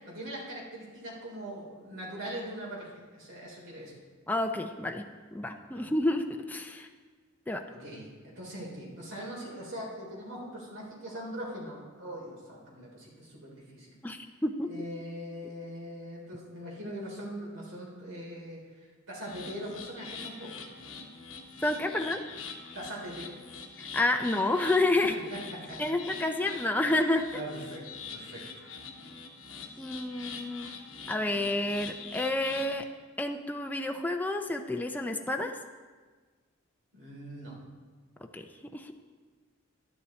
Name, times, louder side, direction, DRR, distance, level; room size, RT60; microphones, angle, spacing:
voice 1, 0.0-4.0 5.7-5.9 7.7-13.9 14.7-18.6 19.1-20.6 22.8-23.3 25.0-25.8 27.3-28.7 36.9-37.6, equal, 75° right, -4 dB, 3.5 m, -41 dB
voice 2, 4.3-5.0 5.3-6.9 7.5-7.6 14.0-14.7 21.6-22.2 23.8-25.1 25.8-27.3 29.8-30.7 31.1-32.9 33.2-35.6 38.3-38.9, left 2 dB, 10° left, 4 dB, 0.4 m, -29 dB
sound 1, 19.2-32.7, left 5 dB, 65° left, 1.1 m, -44 dB
11.5 x 9.9 x 4.2 m, 1.4 s
head